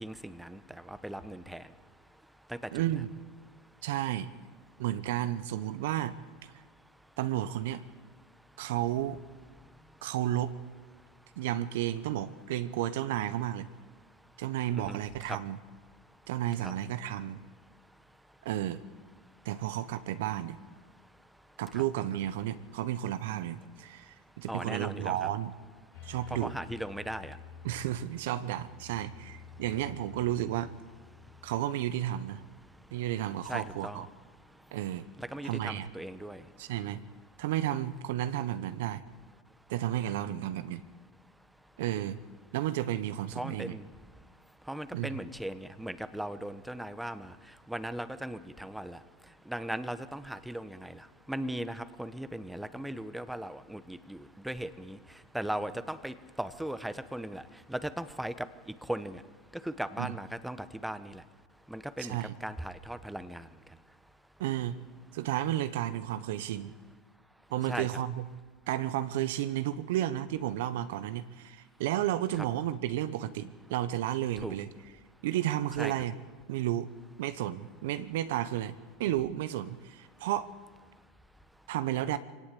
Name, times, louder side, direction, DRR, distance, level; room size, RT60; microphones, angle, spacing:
voice 1, 0.0-1.9 2.5-2.8 9.6-10.0 14.7-15.0 15.2-15.4 16.6-16.7 21.7-21.8 24.5-25.3 26.3-27.4 31.2-31.5 32.9-33.0 33.5-34.0 34.4-34.8 35.2-36.6 43.3-43.9 44.6-59.2 59.5-61.2 61.7-63.8 67.7-67.9 74.4-74.6 75.8-75.9, right 1 dB, 5° right, 12 dB, 1.2 m, -38 dB
voice 2, 2.7-3.1 3.8-4.3 4.8-6.2 7.2-7.8 8.6-9.2 10.0-10.5 11.4-13.7 14.4-15.6 16.3-17.4 18.4-18.8 19.4-20.6 21.6-25.5 26.0-26.5 27.6-30.7 31.4-32.4 32.9-34.1 34.7-35.1 35.4-35.9 36.6-37.0 37.4-39.0 39.7-40.8 41.8-42.2 42.5-43.8 44.9-45.2 60.0-60.2 62.0-62.4 64.4-64.8 65.1-66.7 67.5-68.2 68.7-74.7 75.2-76.1 76.5-76.9 77.2-80.5 81.7-82.2, right 12 dB, 70° right, 13 dB, 0.9 m, -32 dB
sound 1, 25.9-31.6, left 7 dB, 75° left, 5.4 m, -51 dB
23.5 x 17.5 x 8.6 m, 1.4 s
hypercardioid pair, 85°, 0 cm